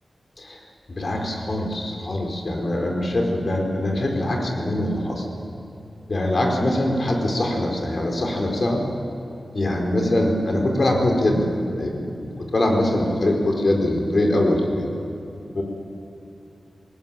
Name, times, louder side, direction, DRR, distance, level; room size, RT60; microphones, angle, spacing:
voice 1, 0.9-5.3 6.1-8.8 9.5-14.9 15.5-15.6, left 1 dB, 55° left, 1 dB, 4.7 m, -23 dB
20.0 x 19.5 x 9.1 m, 2.8 s
wide cardioid pair, 65°, 0 cm